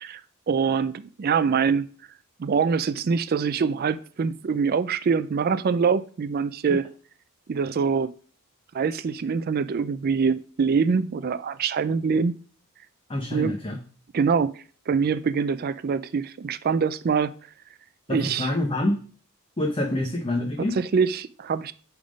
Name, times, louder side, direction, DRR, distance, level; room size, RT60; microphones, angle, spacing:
voice 1, 0.5-1.9 2.4-6.8 7.5-8.1 8.7-12.3 13.3-13.6 14.1-14.5 14.9-17.3 18.1-18.5 20.7-21.7, right 5 dB, 45° right, 0.4 m, -24 dB
voice 2, 13.1-13.8 18.1-19.0 19.6-20.8, left 1 dB, 25° left, 0.8 m, -26 dB
8.6 x 3.6 x 5.2 m
head